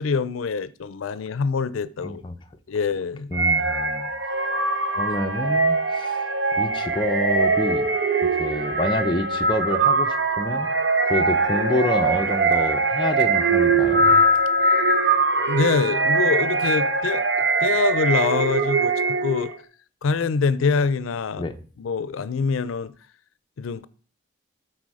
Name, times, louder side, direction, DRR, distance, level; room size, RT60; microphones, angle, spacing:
voice 1, 0.0-2.2 2.7-3.3 15.5-17.2 17.6-18.9 19.2-19.5 20.0-21.4 21.8-22.9 23.6-23.9, left 5 dB, 90° left, 0.5 m, -24 dB
voice 2, 2.0-2.3 3.3-4.1 5.0-6.2 6.6-7.9 8.4-10.7 11.0-14.0 21.4-21.5, left 1 dB, 25° left, 0.8 m, -27 dB
sound 1, 3.3-19.6, right 3 dB, 60° right, 1.1 m, -22 dB
sound 2, 4.3-9.5, right 1 dB, 40° left, 1.3 m, -40 dB
13.0 x 4.5 x 4.8 m
head